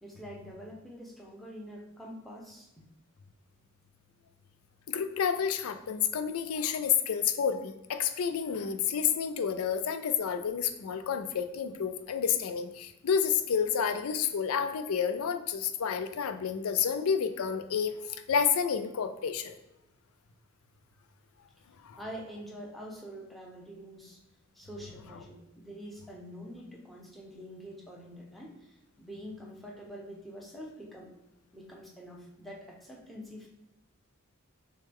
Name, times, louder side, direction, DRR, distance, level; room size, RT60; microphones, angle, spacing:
voice 1, 0.0-2.8 22.0-24.2 24.5-28.6 29.0-31.1 31.5-33.5, equal, ahead, -2 dB, 0.7 m, -45 dB
voice 2, 4.9-19.6 21.8-22.0, left 7 dB, 75° left, 9 dB, 0.4 m, -30 dB
6.2 x 2.3 x 3.4 m, 0.95 s
head